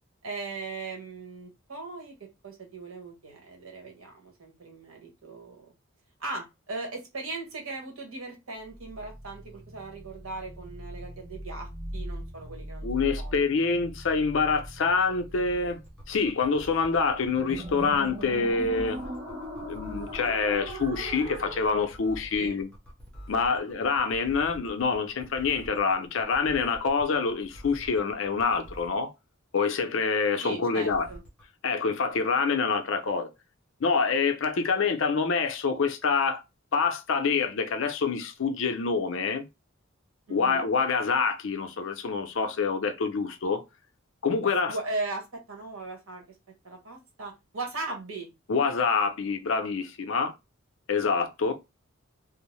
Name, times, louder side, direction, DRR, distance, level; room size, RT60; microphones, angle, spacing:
voice 1, 0.2-5.7 6.2-12.9 13.2-13.7 22.3-22.6 30.4-31.2 40.3-40.7 44.7-46.2 46.6-48.3, right 3 dB, 80° right, 1.1 m, -38 dB
sound 1, 8.7-21.9, right 1 dB, 50° right, 0.8 m, -40 dB
voice 2, 12.8-15.8 16.1-19.0 19.6-22.7 23.3-29.1 29.5-31.1 31.6-33.3 33.8-36.4 36.7-39.4 40.3-43.6 44.2-44.7 48.5-50.3 50.9-51.5, left 5 dB, 65° left, 0.5 m, -26 dB
sound 2, 14.6-29.0 30.8-31.4, equal, 5° left, 0.7 m, -47 dB
2.6 x 2.0 x 3.1 m
head